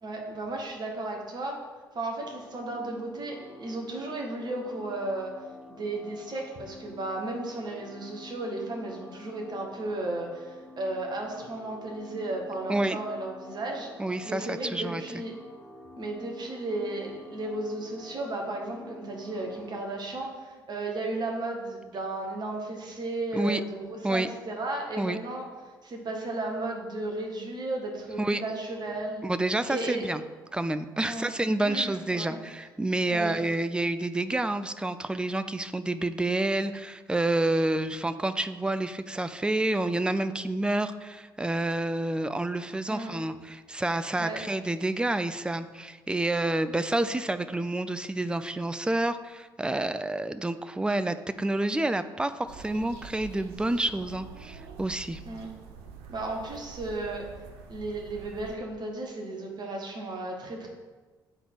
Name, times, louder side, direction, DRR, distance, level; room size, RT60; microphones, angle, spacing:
voice 1, 0.0-1.6 1.9-5.3 5.7-13.9 14.2-15.3 16.0-25.5 25.8-29.2 29.7-30.0 31.0-31.3 31.6-32.4 33.1-33.4 42.9-43.2 44.2-44.4 55.2-55.5 56.1-57.2 57.7-60.7, right 2 dB, 40° right, 1 dB, 1.6 m, -34 dB
sound 1, 2.2-19.8, left 2 dB, 15° left, 1.4 m, -48 dB
voice 2, 14.0-15.2 23.3-23.6 24.0-24.3 25.0-25.2 28.2-28.4 29.2-30.2 30.5-55.2, right 2 dB, 10° right, 11 dB, 0.4 m, -29 dB
sound 2, 52.5-58.6, right 6 dB, 60° right, 0.7 m, -46 dB
8.7 x 3.9 x 4.7 m, 1.3 s
figure-of-eight pair, 50°, 11 cm